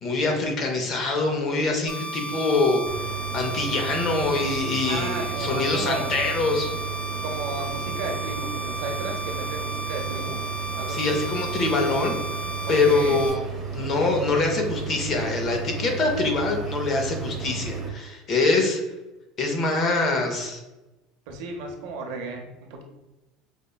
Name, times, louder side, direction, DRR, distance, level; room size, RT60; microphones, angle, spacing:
voice 1, 0.0-3.1 3.3-6.7 10.9-12.2 12.7-13.4 13.7-18.8 19.4-20.6, left 3 dB, 35° left, 3 dB, 0.6 m, -24 dB
sound 1, 1.9-13.3, right 2 dB, 80° left, 0.6 m, -34 dB
sound 2, 2.9-17.9, right 6 dB, 20° right, 0.6 m, -34 dB
voice 2, 4.8-6.1 7.2-10.4 10.7-11.2 12.9-13.3 21.3-22.8, right 3 dB, 70° right, 2 dB, 0.7 m, -34 dB
5.0 x 2.1 x 2.2 m, 1.0 s
cardioid pair, 155°, 0 cm